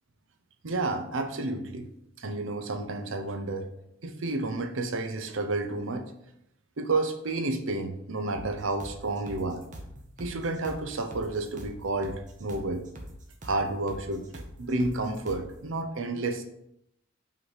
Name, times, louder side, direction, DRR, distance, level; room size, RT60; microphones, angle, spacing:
voice 1, 0.6-1.9 2.2-3.7 4.0-6.1 6.8-9.6 10.2-12.8 13.4-16.4, right 2 dB, 75° right, 7 dB, 0.7 m, -31 dB
sound 1, 8.3-15.6, equal, 40° right, 1.0 m, -44 dB
5.6 x 3.2 x 5.6 m, 0.78 s
head